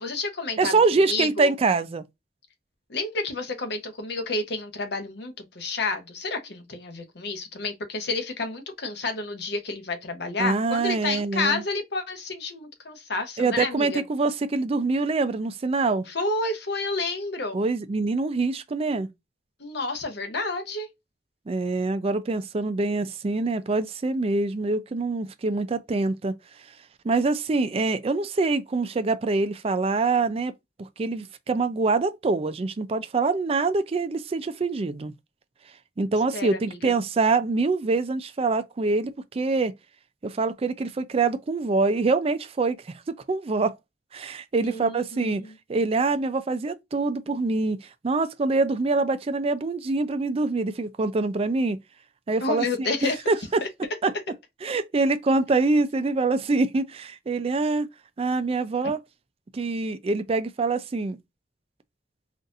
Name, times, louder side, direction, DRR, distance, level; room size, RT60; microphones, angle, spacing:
voice 1, 0.0-0.8 1.1-1.5 2.9-14.0 16.1-17.6 19.6-20.9 36.3-36.9 44.6-45.5 52.4-53.2 53.6-53.7, left 3 dB, 65° left, 0.9 m, -30 dB
voice 2, 0.6-2.0 10.4-11.6 13.4-16.0 17.5-19.1 21.5-26.3 27.0-30.5 30.8-35.1 36.0-39.7 40.2-42.8 43.1-43.7 44.1-45.4 45.7-47.8 48.0-51.8 52.3-52.7 53.0-53.6 54.0-54.1 54.6-57.9 58.2-59.0 59.5-61.2, right 3 dB, 35° right, 0.4 m, -25 dB
4.0 x 2.5 x 2.4 m
head